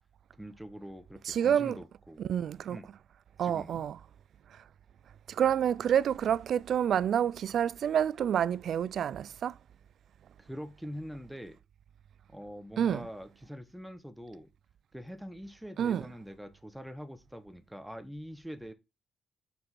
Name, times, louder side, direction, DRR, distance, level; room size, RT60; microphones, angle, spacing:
voice 1, 0.3-2.2 2.7-2.9 3.4-3.8 10.4-11.6 12.3-14.5 14.9-18.7, equal, ahead, 1.0 m, -44 dB
voice 2, 1.2-1.8 2.2-2.8 3.4-4.0 5.4-9.5 12.8-13.1 15.8-16.1, right 9 dB, 65° right, 0.3 m, -28 dB
5.9 x 5.2 x 5.9 m
cardioid pair, 90°, 0 cm